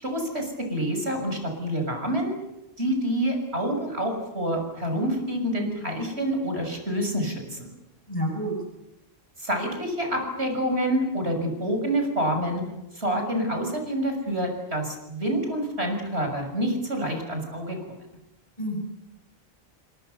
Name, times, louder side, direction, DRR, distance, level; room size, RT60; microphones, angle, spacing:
voice 1, 0.0-2.3 2.8-7.7 9.4-12.6 12.9-17.8, right 1 dB, 80° right, 4 dB, 6.8 m, -27 dB
voice 2, 8.1-8.5 18.6-18.8, equal, 30° left, 1 dB, 7.5 m, -28 dB
30.0 x 25.0 x 6.9 m, 0.92 s
omnidirectional pair, 1.1 m